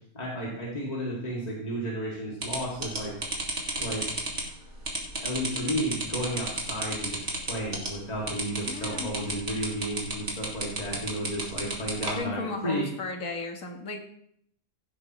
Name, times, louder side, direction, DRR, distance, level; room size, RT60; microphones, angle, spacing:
voice 1, 0.1-3.1 3.8-4.0 5.2-12.9, equal, 30° left, -5 dB, 2.5 m, -33 dB
sound 1, 2.4-12.1, right 2 dB, 60° right, 2.4 m, -32 dB
voice 2, 8.7-9.1 12.2-14.0, left 3 dB, 80° left, 3 dB, 2.0 m, -34 dB
16.0 x 8.5 x 3.1 m, 0.67 s
omnidirectional pair, 1.4 m